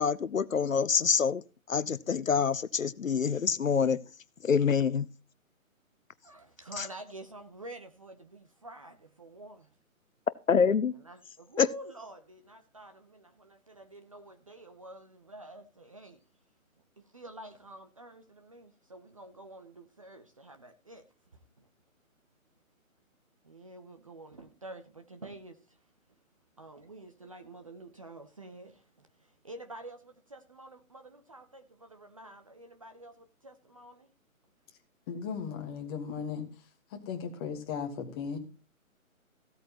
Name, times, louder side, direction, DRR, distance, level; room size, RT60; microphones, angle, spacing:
voice 1, 0.0-1.4 1.7-4.0 4.4-5.1 6.8-6.9 10.5-10.9 11.6-11.7, left 6 dB, 65° left, 0.8 m, -26 dB
voice 2, 6.2-9.7 10.9-16.2 17.0-21.1 21.6-21.7 23.4-25.8 26.1-26.2 26.6-34.1, right 2 dB, 25° right, 0.6 m, -48 dB
voice 3, 35.1-36.5 36.9-38.4, left 6 dB, 15° left, 1.5 m, -36 dB
15.5 x 8.4 x 3.0 m
figure-of-eight pair, 145°, 42 cm